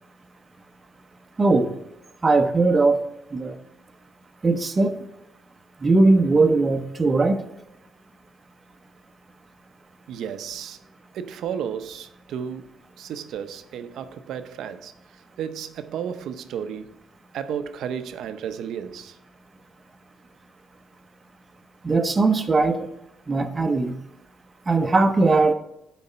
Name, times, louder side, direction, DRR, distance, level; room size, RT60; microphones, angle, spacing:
voice 1, 1.4-1.7 2.2-3.0 3.3-3.6 4.4-5.0 5.8-7.5 21.8-22.9 23.3-24.0 24.7-25.5, right 3 dB, 25° right, 0.7 m, -19 dB
voice 2, 10.1-10.8 11.1-16.9 17.3-19.2, right 8 dB, 70° right, 0.6 m, -33 dB
9.7 x 4.1 x 5.5 m
cardioid pair, 130°, 0 cm